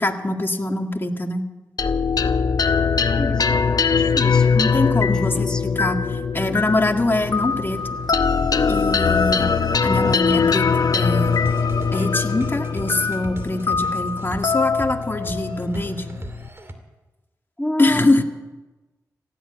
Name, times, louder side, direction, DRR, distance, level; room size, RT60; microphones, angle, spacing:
voice 1, 0.0-1.4 4.6-7.8 8.7-9.5 9.8-11.4 11.9-16.2 17.8-18.2, left 2 dB, 30° left, 4 dB, 1.8 m, -23 dB
sound 1, 1.8-16.5, left 5 dB, 60° left, 0.9 m, -21 dB
voice 2, 3.2-4.6 4.9-5.6 17.6-18.2, left 1 dB, 10° left, 4 dB, 2.0 m, -29 dB
sound 2, 7.0-12.5, right 1 dB, 75° right, 7.4 m, -42 dB
sound 3, 11.2-16.7, right 1 dB, 35° right, 2.6 m, -37 dB
15.5 x 9.9 x 8.7 m, 1.1 s
supercardioid pair, 40°, 7 cm